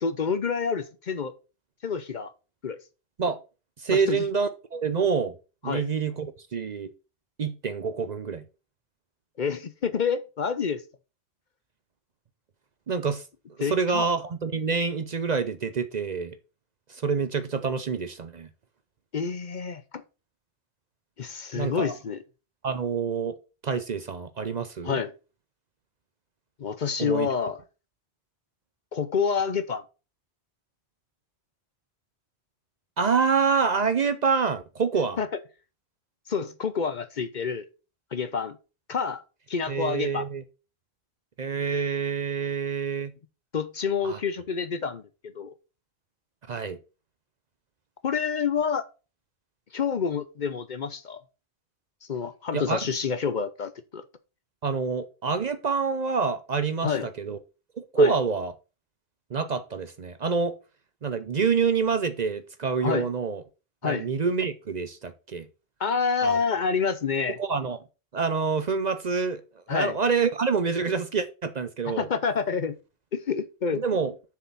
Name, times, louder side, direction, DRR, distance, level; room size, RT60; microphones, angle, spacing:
voice 1, 0.0-1.3 1.8-2.3 2.6-2.8 3.9-4.2 5.6-5.8 9.4-10.8 13.6-14.1 19.1-20.0 21.2-22.2 24.8-25.1 26.6-27.6 28.9-29.8 35.2-35.3 36.3-37.6 38.1-38.6 38.9-39.2 39.5-40.3 43.5-45.0 45.3-45.5 48.0-48.9 49.7-51.2 52.1-54.0 56.8-57.1 58.0-58.1 62.8-63.1 63.8-64.0 65.8-67.4 69.7-70.0 71.9-72.8 73.1-73.8, left 6 dB, 50° left, 0.8 m, -28 dB
voice 2, 3.8-5.4 5.6-6.9 7.4-8.4 12.9-13.2 13.6-16.4 16.9-18.5 21.5-22.0 22.6-23.4 23.6-25.0 27.0-27.3 33.0-35.2 39.7-40.4 41.4-43.1 44.0-44.2 46.5-46.8 52.5-52.8 54.6-57.4 57.8-58.5 59.3-60.6 61.0-63.4 63.8-65.5 66.2-66.4 67.4-67.8 68.1-69.4 69.7-72.1 73.7-74.1, right 5 dB, 45° right, 0.7 m, -27 dB
6.8 x 4.7 x 5.5 m
omnidirectional pair, 1.1 m